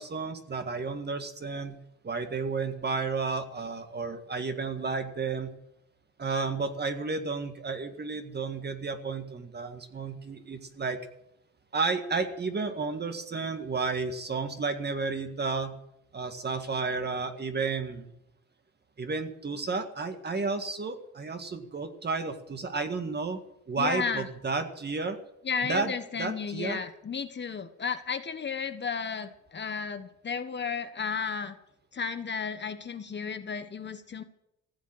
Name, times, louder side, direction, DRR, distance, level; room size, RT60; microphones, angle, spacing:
voice 1, 0.0-1.8 2.0-5.5 6.2-11.0 11.7-15.7 16.1-18.1 19.0-23.4 23.7-25.2 25.6-25.9 26.2-26.8, right 4 dB, 35° right, 7 dB, 1.8 m, -32 dB
voice 2, 23.8-24.3 25.4-31.6 31.9-34.2, left 6 dB, 35° left, 9 dB, 1.2 m, -33 dB
15.5 x 7.4 x 8.9 m, 0.80 s
cardioid pair, 90°, 30 cm